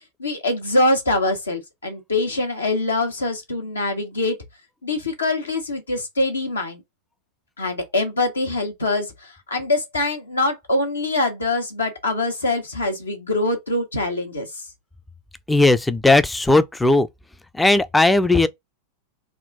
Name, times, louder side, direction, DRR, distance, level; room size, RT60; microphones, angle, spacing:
voice 1, 0.2-4.4 4.8-6.8 7.6-14.6, left 2 dB, 75° left, 1.1 m, -24 dB
voice 2, 15.5-17.1 17.5-18.5, left 2 dB, 5° left, 0.4 m, -17 dB
3.6 x 2.4 x 3.9 m
figure-of-eight pair, 90°, 0 cm